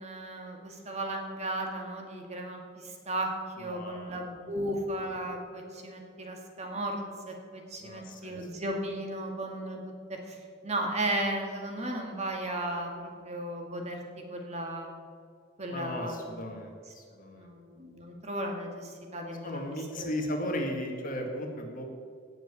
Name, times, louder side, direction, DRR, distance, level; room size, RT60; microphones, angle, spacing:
voice 1, 0.0-3.3 3.6-9.8 10.1-14.0 14.3-14.9 15.6-16.3 17.4-20.1, right 1 dB, 35° right, 2 dB, 2.1 m, -35 dB
voice 2, 3.6-4.1 7.8-8.4 15.7-17.5 19.4-21.8, left 1 dB, 45° left, 2 dB, 2.1 m, -36 dB
17.0 x 7.2 x 6.9 m, 2.2 s
head